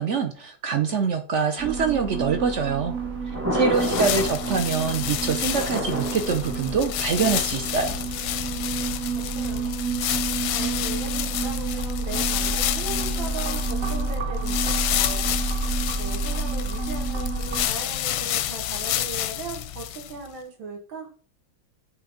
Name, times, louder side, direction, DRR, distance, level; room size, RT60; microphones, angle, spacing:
voice 1, 0.0-3.0 3.3-8.0, right 5 dB, 70° right, 6 dB, 0.7 m, -25 dB
sound 1, 1.6-17.7, right 4 dB, 50° right, 1.6 m, -30 dB
Thunder, 2.7-8.6, equal, 10° right, 0.7 m, -32 dB
voice 2, 3.5-4.0 9.3-9.8 10.5-15.3 16.0-21.1, right 3 dB, 85° right, 2 dB, 2.4 m, -38 dB
sound 2, 3.7-20.3, left 12 dB, 90° left, 1.4 m, -29 dB
7.8 x 3.4 x 5.1 m, 0.40 s
omnidirectional pair, 2.1 m